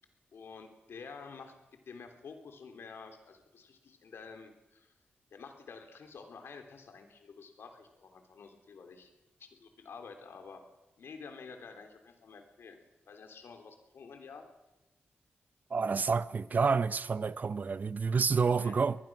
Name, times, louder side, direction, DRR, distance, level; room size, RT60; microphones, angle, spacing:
voice 1, 0.3-1.6 1.8-4.9 5.3-9.1 9.4-10.6 11.0-12.8 13.1-14.5 18.6-18.8, left 5 dB, 80° left, 3.3 m, -49 dB
voice 2, 15.7-19.0, right 5 dB, 45° right, 0.7 m, -29 dB
23.5 x 20.0 x 6.1 m
wide cardioid pair, 100°, 4 cm